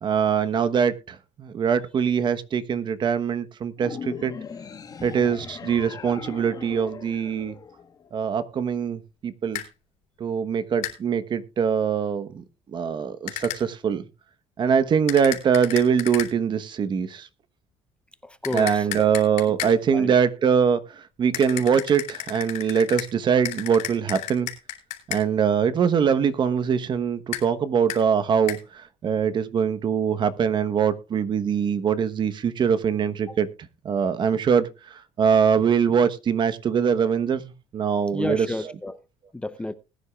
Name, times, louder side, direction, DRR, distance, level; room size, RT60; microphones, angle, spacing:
voice 1, 0.0-4.3 5.0-7.5 8.1-9.6 10.2-14.0 14.6-17.3 18.5-24.5 25.1-33.5 33.8-38.5, right 7 dB, 40° right, 1.1 m, -23 dB
sound 1, 3.8-8.3, left 6 dB, 30° left, 1.2 m, -39 dB
sound 2, 9.5-9.7 10.8-11.0 13.3-13.6 15.1-16.3 18.4-19.8 21.3-23.1 23.4-25.2 27.3-27.4 27.9-28.0 28.5-28.6, left 14 dB, 75° left, 3.5 m, -33 dB
voice 2, 18.2-19.1 19.5-20.1 33.3-33.4 38.1-39.0 39.3-39.7, left 2 dB, 10° left, 0.7 m, -32 dB
20.0 x 10.0 x 2.4 m
cardioid pair, 120°, 12 cm